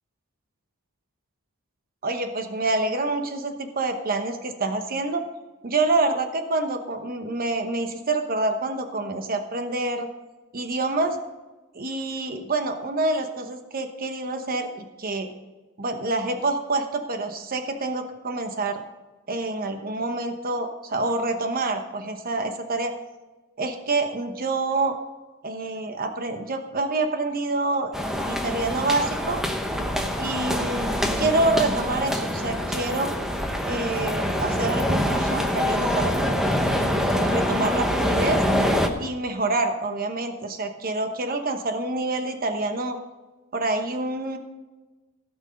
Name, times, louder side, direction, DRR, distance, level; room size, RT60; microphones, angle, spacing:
voice 1, 2.0-5.2 5.6-10.1 10.5-11.2 11.7-15.3 15.8-18.8 19.3-22.9 23.6-25.0 25.4-29.4 30.2-33.1 33.6-36.2 37.1-38.4 39.0-43.0 43.5-44.4, right 2 dB, 40° right, 6 dB, 1.0 m, -27 dB
sound 1, 27.9-38.9, equal, ahead, 0.9 m, -25 dB
16.5 x 6.2 x 5.2 m, 1.2 s
head